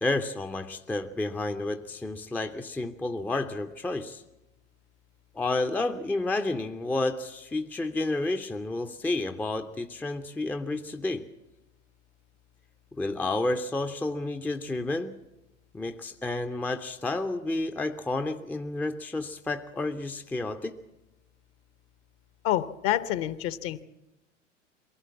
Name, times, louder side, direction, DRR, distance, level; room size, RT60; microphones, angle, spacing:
voice 1, 0.0-4.2 5.3-11.3 13.0-15.2 15.7-20.8, left 2 dB, 5° left, 7 dB, 0.6 m, -30 dB
voice 2, 22.4-23.8, left 13 dB, 40° left, 16 dB, 0.9 m, -28 dB
23.0 x 16.5 x 7.3 m, 0.99 s
figure-of-eight pair, 85°, 37 cm